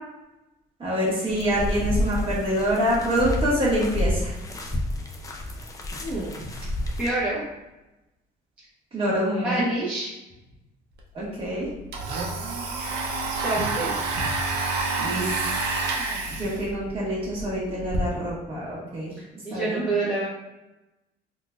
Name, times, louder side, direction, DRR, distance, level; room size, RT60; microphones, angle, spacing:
voice 1, 0.8-4.3 8.9-9.7 11.1-11.7 15.0-15.5 16.3-19.1 19.5-19.8, equal, 35° right, -6 dB, 1.4 m, -26 dB
sound 1, 1.3-7.1, left 1 dB, 20° left, 0.4 m, -29 dB
voice 2, 6.0-6.4 7.0-7.5 9.4-10.1 12.9-14.0 19.4-20.3, right 2 dB, 10° right, -9 dB, 0.8 m, -28 dB
Domestic sounds home sounds, 11.0-11.1 11.4-18.0, right 3 dB, 75° right, 0.6 m, -29 dB
3.7 x 2.4 x 2.4 m, 0.98 s
cardioid pair, 110°, 17 cm